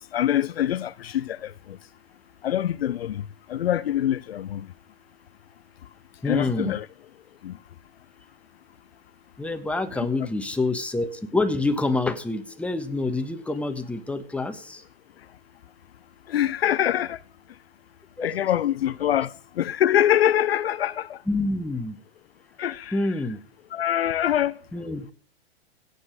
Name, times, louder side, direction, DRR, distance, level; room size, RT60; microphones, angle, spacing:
voice 1, 0.1-1.8 2.4-3.2 3.5-4.7 6.2-6.9 7.4-7.6 16.3-17.2 18.2-21.2 22.6-23.0 23.7-24.6, left 11 dB, 75° left, 0.6 m, -24 dB
voice 2, 6.2-6.7 9.4-14.8 18.2-18.3 21.3-22.0 22.9-23.4 24.7-25.1, left 2 dB, 5° left, 1.3 m, -27 dB
16.5 x 5.6 x 6.4 m
hypercardioid pair, 105°, 31 cm